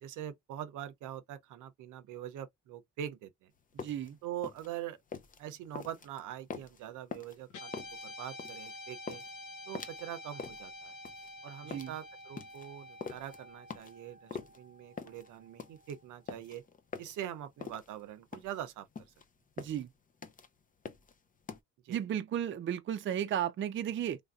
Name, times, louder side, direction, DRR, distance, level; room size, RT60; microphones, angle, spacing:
voice 1, 0.0-3.5 4.2-5.0 5.4-9.2 9.7-11.0 11.4-16.6 17.0-18.9 21.8-22.0, right 11 dB, 85° right, 0.7 m, -43 dB
sound 1, 3.6-21.6, left 5 dB, 30° left, 0.5 m, -45 dB
voice 2, 3.8-4.2 11.7-11.9 19.6-19.9 21.9-24.2, right 10 dB, 40° right, 0.5 m, -34 dB
Guitar, 7.5-16.0, left 1 dB, 80° left, 0.8 m, -49 dB
3.3 x 2.6 x 2.3 m
cardioid pair, 90°, 30 cm